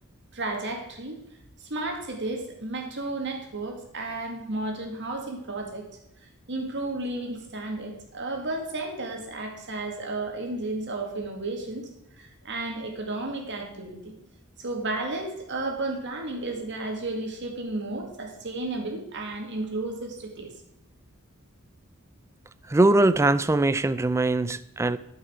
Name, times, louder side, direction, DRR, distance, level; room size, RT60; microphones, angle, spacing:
voice 1, 0.3-1.2 1.6-5.9 6.5-11.9 12.2-14.1 14.6-20.5, right 2 dB, 55° right, 3 dB, 2.1 m, -33 dB
voice 2, 22.7-25.0, right 2 dB, 15° right, 15 dB, 0.3 m, -21 dB
12.5 x 5.5 x 5.1 m, 0.86 s
head